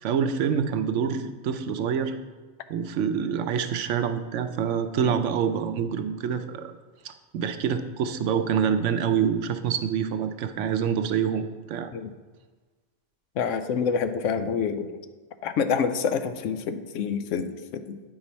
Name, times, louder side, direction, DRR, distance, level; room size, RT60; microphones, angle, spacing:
voice 1, 0.0-2.1 2.7-6.7 7.0-11.9, right 7 dB, 75° right, 9 dB, 0.9 m, -26 dB
voice 2, 13.4-14.9 15.4-18.0, left 6 dB, 85° left, 10 dB, 0.9 m, -27 dB
9.2 x 4.9 x 4.1 m, 1.3 s
omnidirectional pair, 1.3 m